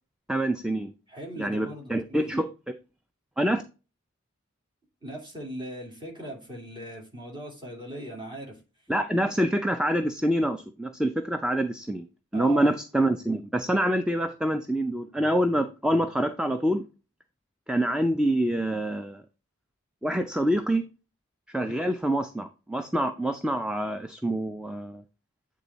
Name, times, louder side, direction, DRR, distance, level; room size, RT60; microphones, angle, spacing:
voice 1, 0.3-0.9 1.4-2.5 3.4-3.6 8.9-12.1 12.3-16.8 17.7-19.2 20.0-20.8 21.5-25.0, right 1 dB, 5° right, 7 dB, 0.4 m, -26 dB
voice 2, 1.1-2.3 5.0-8.6 12.3-12.7, right 1 dB, 25° right, -1 dB, 2.6 m, -39 dB
8.6 x 3.7 x 4.0 m, 0.32 s
head